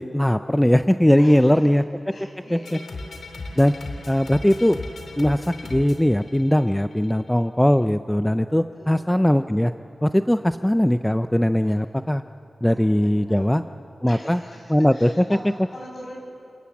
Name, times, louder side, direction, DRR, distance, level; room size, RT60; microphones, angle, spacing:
voice 1, 0.0-1.8 2.5-2.8 3.6-3.8 4.1-4.8 5.2-9.7 10.0-12.2 12.6-13.6 14.0-14.4 14.7-15.3, equal, 5° left, 10 dB, 0.4 m, -19 dB
voice 2, 1.2-1.7 2.1-2.9 3.5-3.6 8.7-9.2 11.6-11.7 12.6-13.7 14.1-16.2, left 1 dB, 50° left, 0 dB, 6.7 m, -43 dB
sound 1, 2.6-7.1, left 2 dB, 70° left, 2.6 m, -37 dB
29.5 x 18.5 x 7.2 m, 2.7 s
wide cardioid pair, 110°, 0 cm